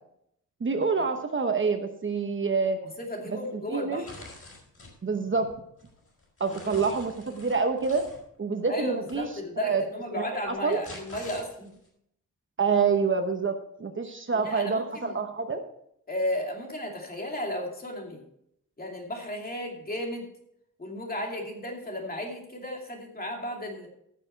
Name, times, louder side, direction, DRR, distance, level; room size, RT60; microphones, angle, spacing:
voice 1, 0.6-2.8 3.3-4.0 5.0-5.5 6.4-8.0 8.4-9.3 9.6-9.8 10.1-10.8 12.6-15.6, right 5 dB, 40° right, 6 dB, 1.0 m, -27 dB
voice 2, 3.0-4.1 6.5-6.6 8.7-11.8 14.3-15.2 16.1-18.2 18.8-20.2 20.8-23.9, left 1 dB, 30° left, 1 dB, 2.6 m, -34 dB
sound 1, 4.1-5.0 5.5-8.2 9.1-9.3 10.5-11.9, left 2 dB, 45° left, 4.8 m, -46 dB
15.0 x 6.7 x 4.6 m, 0.73 s
wide cardioid pair, 135°, 32 cm